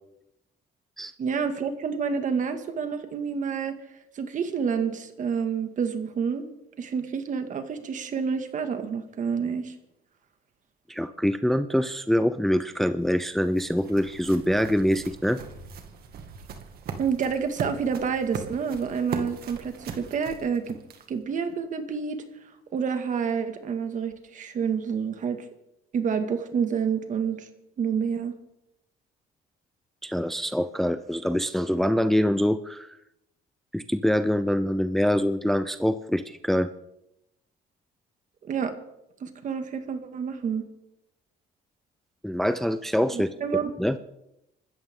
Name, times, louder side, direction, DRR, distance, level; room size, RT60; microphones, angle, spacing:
voice 1, 1.2-3.8 4.1-6.5 6.8-9.7 17.0-20.8 21.1-22.2 22.7-25.5 25.9-27.5 27.8-28.4 38.4-38.7 39.2-40.6 43.1-43.7, right 6 dB, 50° right, 7 dB, 2.1 m, -28 dB
voice 2, 10.9-15.4 30.0-33.0 33.7-36.7 42.2-43.3 43.8-44.0, equal, ahead, 11 dB, 0.5 m, -24 dB
sound 1, 12.7-21.3, right 6 dB, 65° right, 2.2 m, -40 dB
25.5 x 13.5 x 3.8 m, 0.86 s
cardioid pair, 110°, 17 cm